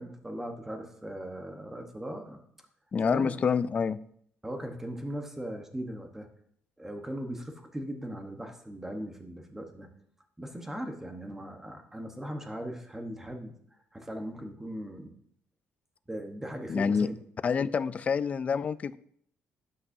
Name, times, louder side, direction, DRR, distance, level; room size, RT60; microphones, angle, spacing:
voice 1, 0.0-2.4 3.0-3.4 4.4-6.3 6.8-9.9 10.4-13.5 13.9-15.1 16.1-17.1, equal, 10° right, 4 dB, 1.1 m, -39 dB
voice 2, 2.9-4.0 16.7-17.1 17.4-19.0, left 6 dB, 30° left, 16 dB, 0.3 m, -27 dB
12.0 x 8.5 x 2.7 m, 0.67 s
cardioid pair, 160°, 5 cm